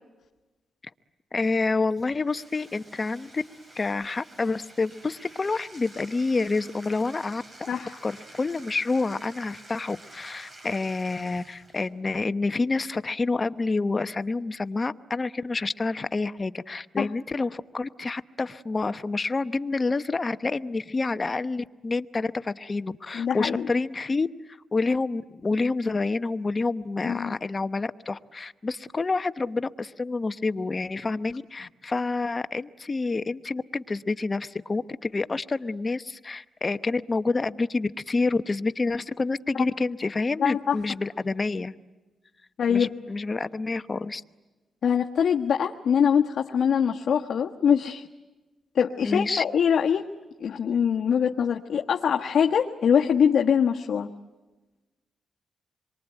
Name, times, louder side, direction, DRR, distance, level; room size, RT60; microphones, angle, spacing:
voice 1, 1.3-3.4 3.8-7.7 8.0-41.7 42.7-44.2 49.0-49.4, left 3 dB, 30° left, 12 dB, 0.9 m, -28 dB
Bathtub (filling or washing), 1.9-11.9, right 1 dB, 35° right, 6.5 m, -49 dB
voice 2, 23.1-23.7 27.0-27.3 40.4-40.8 42.6-42.9 44.8-48.1 48.7-50.1 50.4-54.1, left 7 dB, 65° left, 1 dB, 1.4 m, -23 dB
27.5 x 23.5 x 9.1 m, 1.2 s
cardioid pair, 115°, 0 cm